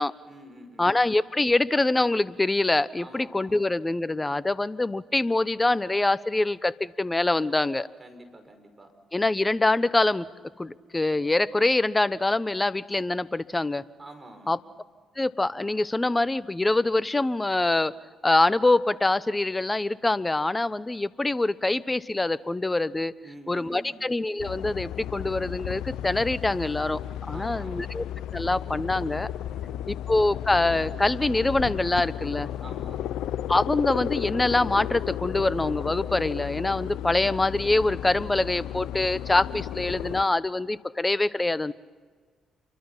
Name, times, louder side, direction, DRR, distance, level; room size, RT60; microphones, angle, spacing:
voice 1, 0.3-0.9 3.0-3.6 8.0-8.9 14.0-14.6 23.2-24.0 27.3-27.9 29.5-30.1 32.6-33.1, right 1 dB, 25° right, 5 dB, 5.6 m, -47 dB
voice 2, 0.8-7.9 9.1-10.3 10.6-13.8 14.5-14.6 15.2-17.9 18.2-23.1 23.5-27.0 27.3-28.0 28.3-29.3 29.9-32.5 33.5-41.7, left 2 dB, 20° left, 18 dB, 0.9 m, -24 dB
sound 1, 24.4-40.2, left 11 dB, 75° left, 0.6 m, -34 dB
28.0 x 24.0 x 5.8 m, 1.5 s
hypercardioid pair, 45°, 0 cm